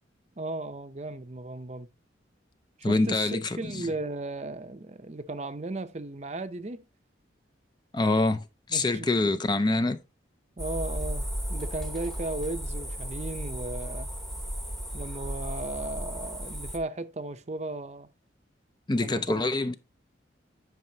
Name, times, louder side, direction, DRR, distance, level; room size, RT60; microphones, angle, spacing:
voice 1, 0.4-1.9 2.8-6.8 8.7-9.3 10.6-14.1 14.9-18.1 19.0-19.5, right 2 dB, 35° right, 0.6 m, -36 dB
voice 2, 2.8-3.8 7.9-8.4 8.7-10.0 18.9-19.7, left 2 dB, 20° left, 0.4 m, -25 dB
sound 1, 10.6-16.8, equal, ahead, 0.9 m, -35 dB
10.5 x 5.5 x 2.8 m
head